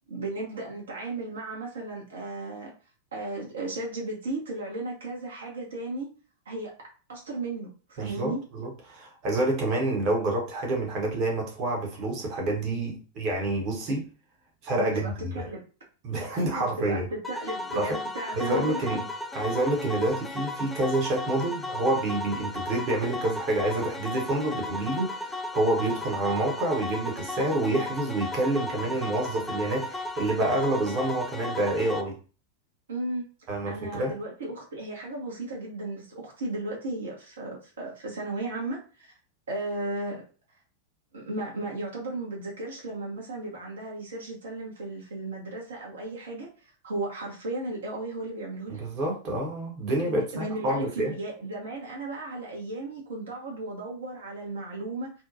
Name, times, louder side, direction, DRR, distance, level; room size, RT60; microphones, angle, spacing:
voice 1, 0.1-2.7 3.1-6.1 6.5-6.7 7.1-8.4 14.7-15.6 16.3-19.1 32.9-33.3 33.7-39.1 39.5-40.2 41.1-48.8 50.1-55.1, right 2 dB, 65° right, -2 dB, 0.8 m, -35 dB
voice 2, 8.0-14.0 14.6-15.5 16.0-17.1 17.7-18.0 18.3-19.0 19.3-32.2 33.5-34.1 48.7-51.1, right 2 dB, 40° right, 0 dB, 0.8 m, -28 dB
sound 1, 17.2-32.0, left 2 dB, 5° left, 0.3 m, -35 dB
2.7 x 2.1 x 2.5 m, 0.36 s
figure-of-eight pair, 90°, 0 cm